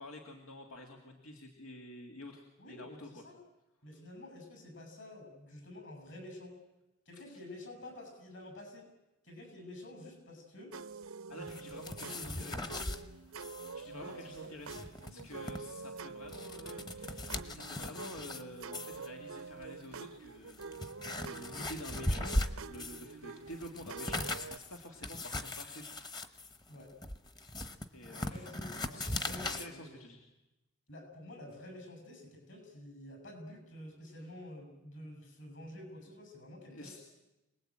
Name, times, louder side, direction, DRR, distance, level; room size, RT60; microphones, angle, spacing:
voice 1, 0.0-3.2 7.1-7.2 11.3-12.7 13.7-20.8 21.2-22.4 22.7-25.9 27.9-30.3 36.7-37.0, left 1 dB, 90° left, 2 dB, 2.4 m, -49 dB
voice 2, 2.6-3.4 3.8-6.6 7.1-8.9 9.2-10.7 11.3-13.1 13.9-14.5 26.7-26.9 28.1-30.0 30.9-37.0, left 1 dB, 60° left, 4 dB, 7.9 m, -49 dB
sound 1, 10.7-24.6, right 4 dB, 85° right, 0.8 m, -47 dB
sound 2, 11.5-13.0 13.4-13.7 14.0-14.1 14.5-15.6 16.1-18.4 18.7-19.1 19.8-19.9 20.4-23.1 23.5-29.7, left 1 dB, 20° left, 1.0 m, -39 dB
26.5 x 19.5 x 8.9 m, 1.0 s
head